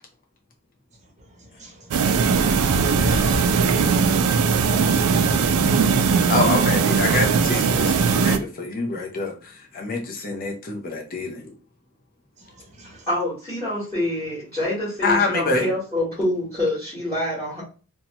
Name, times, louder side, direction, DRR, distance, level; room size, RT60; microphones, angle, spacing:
voice 1, 1.0-2.8 12.4-13.1, right 2 dB, 30° right, 0.7 m, -49 dB
sound 1, 1.9-8.4, right 5 dB, 90° right, 0.3 m, -19 dB
sound 2, 2.3-4.0, equal, 75° left, 0.7 m, -29 dB
voice 2, 6.3-11.5 15.0-15.7, left 3 dB, 40° left, 0.6 m, -26 dB
voice 3, 12.8-17.6, left 1 dB, 10° left, 1.3 m, -26 dB
2.8 x 2.2 x 2.9 m
head